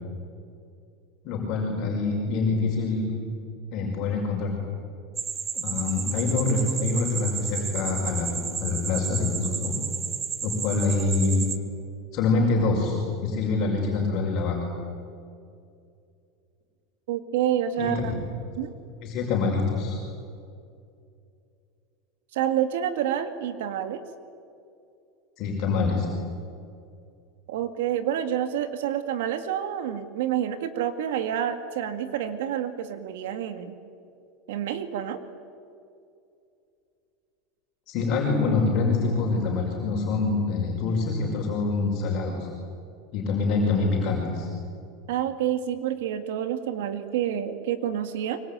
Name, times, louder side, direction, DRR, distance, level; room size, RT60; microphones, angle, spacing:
voice 1, 1.2-3.1 3.7-4.5 5.5-8.3 8.6-9.8 10.4-11.4 12.1-14.6 17.8-17.9 19.0-20.0 25.4-26.1 37.9-42.5 43.1-44.5, left 3 dB, 40° left, -2 dB, 5.6 m, -25 dB
sound 1, 5.2-11.6, right 7 dB, 20° right, 1.2 m, -32 dB
voice 2, 17.1-18.1 18.6-18.7 22.3-24.0 27.5-33.7 34.5-35.2 45.1-48.4, right 10 dB, 80° right, 9 dB, 2.3 m, -28 dB
25.5 x 24.0 x 9.2 m, 2.5 s
supercardioid pair, 165°, 0 cm